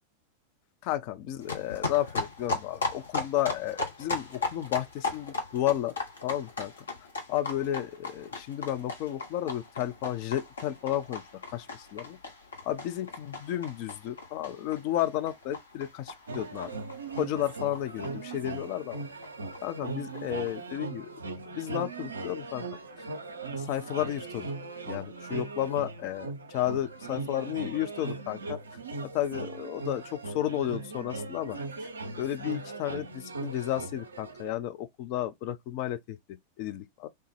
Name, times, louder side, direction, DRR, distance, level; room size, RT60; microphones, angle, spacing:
voice 1, 0.8-6.0 6.2-6.7 7.3-11.2 11.5-12.2 12.6-16.7 17.2-19.0 19.6-21.1 21.5-22.7 23.6-24.5 24.8-28.6 29.1-31.6 32.1-37.1, left 12 dB, 45° left, 0.4 m, -32 dB
sound 1, 1.4-18.7 18.9-19.0 19.2-19.3 19.5-19.6 19.8-20.5, left 3 dB, 70° left, 0.7 m, -37 dB
sound 2, 16.3-34.5, right 3 dB, 75° right, 0.4 m, -39 dB
3.2 x 2.0 x 3.1 m
figure-of-eight pair, 90°, 0 cm